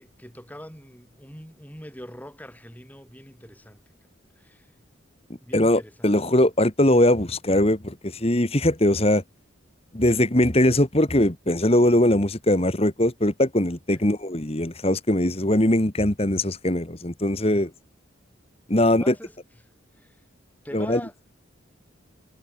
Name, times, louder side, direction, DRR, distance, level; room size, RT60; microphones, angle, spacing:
voice 1, 0.0-4.1 4.4-4.7 5.4-6.1 13.9-14.1 17.5-17.7 18.7-19.4 19.9-20.2 20.6-21.1, equal, 10° left, 7.9 m, -43 dB
voice 2, 5.5-9.2 9.9-17.7 18.7-19.1 20.7-21.0, left 1 dB, 30° left, 1.8 m, -21 dB
head